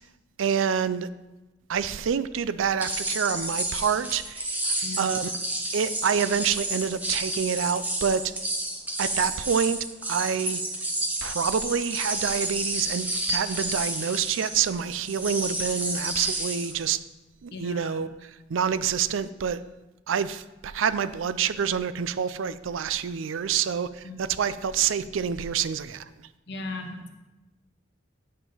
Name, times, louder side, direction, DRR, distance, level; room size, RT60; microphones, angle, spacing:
voice 1, 0.4-1.1 1.7-4.6 5.0-5.3 5.7-8.3 9.0-10.6 11.2-17.0 17.4-19.6 20.1-26.0, right 7 dB, 85° right, 14 dB, 0.4 m, -27 dB
sound 1, 2.8-16.8, right 1 dB, 10° right, 0.9 m, -30 dB
voice 2, 17.5-17.9 24.0-24.3 26.5-27.1, left 2 dB, 60° left, 5 dB, 1.0 m, -37 dB
9.3 x 3.7 x 6.0 m, 1.0 s
head